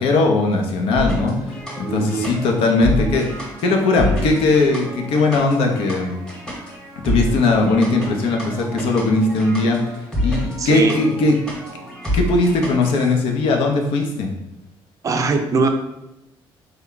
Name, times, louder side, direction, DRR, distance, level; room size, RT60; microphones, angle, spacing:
voice 1, 0.0-6.2 7.0-9.8 10.2-11.4 12.1-14.3, left 3 dB, 75° left, 2 dB, 0.6 m, -19 dB
sound 1, 1.0-13.1, equal, 5° left, 1.0 m, -28 dB
voice 2, 1.9-2.3 10.6-11.0 15.0-15.7, right 4 dB, 35° right, 6 dB, 0.4 m, -21 dB
3.2 x 2.2 x 3.8 m, 0.92 s
cardioid pair, 110°, 9 cm